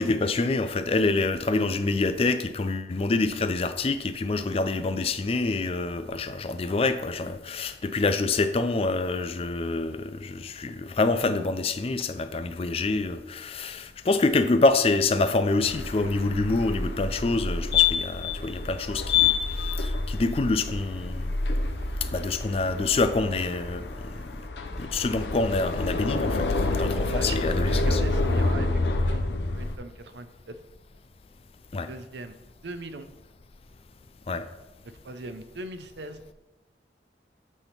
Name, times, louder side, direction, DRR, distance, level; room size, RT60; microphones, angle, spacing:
voice 1, 0.0-19.3 19.8-21.3 22.0-23.9 24.8-26.5 26.8-28.0 31.7-31.9 34.3-34.4, left 3 dB, 35° left, 11 dB, 0.4 m, -26 dB
sound 1, 15.6-29.8, left 4 dB, 80° left, 0.7 m, -27 dB
voice 2, 26.9-28.8 29.1-29.3 29.5-30.5 31.9-32.4 32.6-33.1 35.0-36.2, right 2 dB, 80° right, 10 dB, 0.6 m, -39 dB
8.3 x 3.5 x 5.6 m, 1.1 s
head